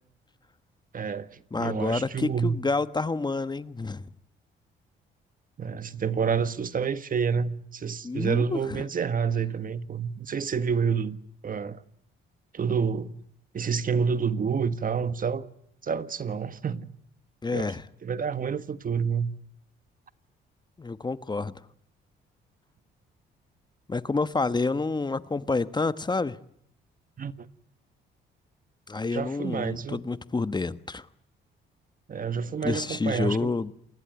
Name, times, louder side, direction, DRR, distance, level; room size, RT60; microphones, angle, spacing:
voice 1, 0.9-2.6 5.6-11.2 11.4-11.8 12.5-13.2 13.5-15.5 15.8-16.9 17.5-17.7 18.0-19.4 27.2-27.5 29.1-30.0 32.1-33.5, right 6 dB, 45° right, 1.5 m, -28 dB
voice 2, 1.5-4.1 8.0-8.8 17.4-17.8 20.8-21.6 23.9-26.4 28.9-31.1 32.6-33.7, left 3 dB, 20° left, 1.2 m, -28 dB
28.0 x 20.5 x 9.4 m
cardioid pair, 90°, 20 cm